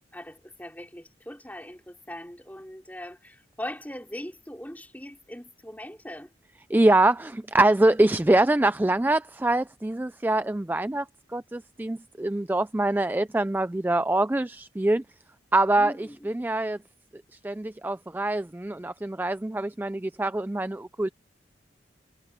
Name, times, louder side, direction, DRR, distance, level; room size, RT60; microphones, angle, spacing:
voice 1, 0.1-6.3 15.7-16.3, left 1 dB, 10° left, 4.1 m, -40 dB
voice 2, 6.7-11.1 11.3-15.0 15.5-16.8 17.3-21.1, right 2 dB, 10° right, 0.3 m, -24 dB
head